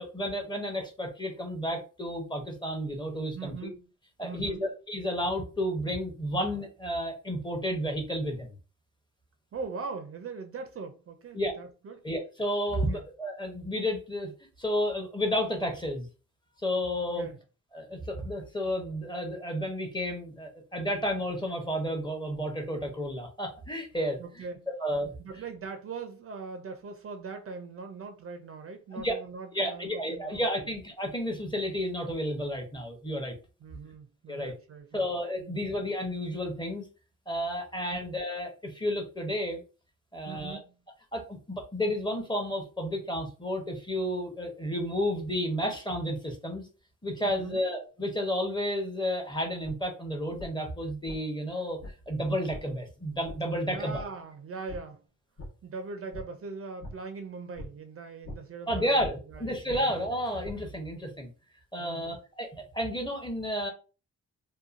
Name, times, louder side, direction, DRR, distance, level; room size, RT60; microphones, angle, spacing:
voice 1, 0.0-3.7 4.2-8.5 11.3-11.5 12.0-14.3 14.6-16.1 16.6-17.3 17.7-24.2 24.8-25.1 28.9-29.1 29.5-33.3 34.3-34.5 34.9-36.8 37.3-39.6 40.1-40.6 41.1-46.7 47.0-51.8 52.1-54.0 58.7-61.3 61.7-63.7, equal, 15° left, 0.7 m, -31 dB
voice 2, 3.3-3.8 4.2-4.6 9.5-12.0 12.9-13.0 17.2-17.4 24.2-24.7 25.2-30.7 33.6-35.1 35.4-35.7 37.9-38.0 40.3-40.8 47.2-47.6 53.7-55.0 55.6-58.9 59.3-60.0 61.8-62.2, right 4 dB, 45° right, 0.5 m, -41 dB
sound 1, 49.6-49.7 50.4-50.5 51.1-51.2 51.8-51.9 52.5-52.6 53.2-53.4 53.9-54.1 54.7-54.8 55.4-55.5 56.1-56.2 56.8-56.9 57.6-57.7 58.2-58.4 59.0-59.1 59.7-60.6, left 1 dB, 55° left, 1.0 m, -41 dB
2.8 x 2.2 x 2.4 m
cardioid pair, 105°, 32 cm